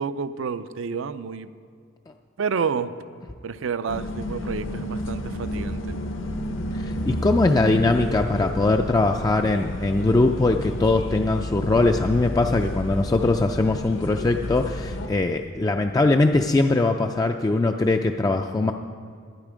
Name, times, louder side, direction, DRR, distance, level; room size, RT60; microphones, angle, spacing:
voice 1, 0.0-1.5 2.4-3.0 3.4-5.8, right 6 dB, 70° right, 13 dB, 0.5 m, -29 dB
sound 1, 3.9-15.1, left 1 dB, 65° left, 0.9 m, -31 dB
voice 2, 6.7-18.7, left 2 dB, 20° left, 4 dB, 0.3 m, -21 dB
12.0 x 9.9 x 5.0 m, 2.2 s
head